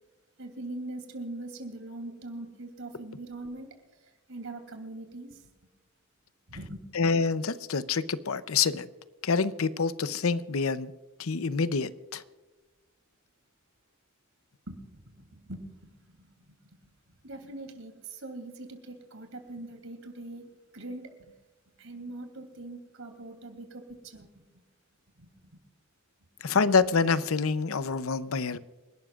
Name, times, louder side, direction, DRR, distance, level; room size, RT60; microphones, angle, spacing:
voice 1, 0.4-3.7 4.3-5.4 6.5-6.8 14.7-16.6 17.1-21.1 21.8-24.3 25.2-25.3, right 2 dB, 75° right, 3.0 m, -42 dB
voice 2, 6.9-8.9 9.2-10.9 11.2-12.2 26.4-28.6, left 5 dB, 85° left, 0.7 m, -27 dB
28.0 x 12.0 x 2.4 m
head